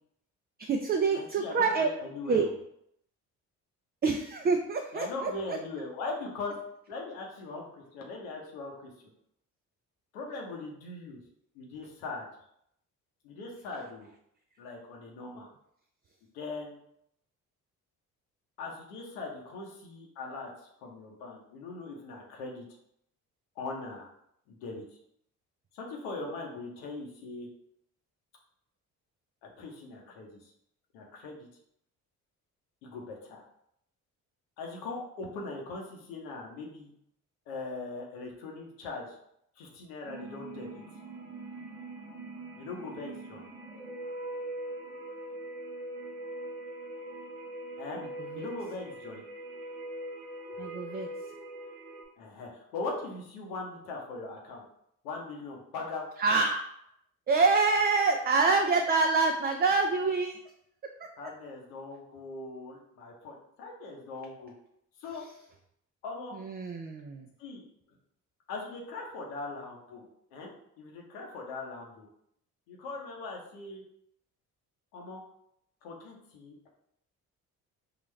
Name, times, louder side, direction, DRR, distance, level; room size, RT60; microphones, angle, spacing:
voice 1, 0.6-1.9 2.3-2.5 4.0-5.6 48.2-48.5 50.6-51.1 56.2-56.6 57.3-60.4 66.3-67.3, right 4 dB, 25° right, 4 dB, 0.4 m, -26 dB
voice 2, 1.1-2.5 4.9-6.6 6.9-8.9 10.1-11.2 11.5-12.3 13.2-14.1 14.6-15.5 16.3-16.8 18.6-20.5 20.8-22.7 23.6-24.1 24.5-24.8 25.7-27.5 29.4-30.4 30.9-31.5 32.8-33.4 34.6-36.9 37.5-39.2 39.6-40.8 42.6-43.5 47.8-48.1 48.4-49.2 52.2-54.6 55.0-56.1 61.2-64.5 65.0-65.2 66.0-66.4 67.4-67.6 68.5-70.0 70.3-72.1 72.7-73.8 74.9-75.2 75.8-76.7, left 3 dB, 90° left, 0 dB, 0.8 m, -40 dB
sound 1, 40.0-52.0, right 1 dB, 90° right, 0.8 m, -42 dB
3.8 x 2.4 x 3.1 m, 0.73 s
hypercardioid pair, 55°, 39 cm